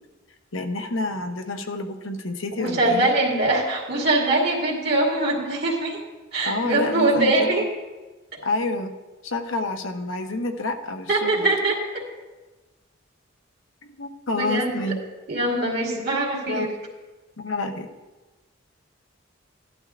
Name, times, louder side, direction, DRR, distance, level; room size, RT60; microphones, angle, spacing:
voice 1, 0.5-3.1 6.4-7.6 8.4-8.9 9.2-11.5 14.0-15.0 16.5-16.7 17.4-17.9, left 2 dB, 85° left, 4 dB, 1.0 m, -28 dB
voice 2, 2.6-6.0 6.3-7.6 11.1-12.0 14.4-14.7 15.3-16.7, right 2 dB, 55° right, -2 dB, 2.4 m, -22 dB
15.5 x 11.5 x 2.5 m, 1.2 s
head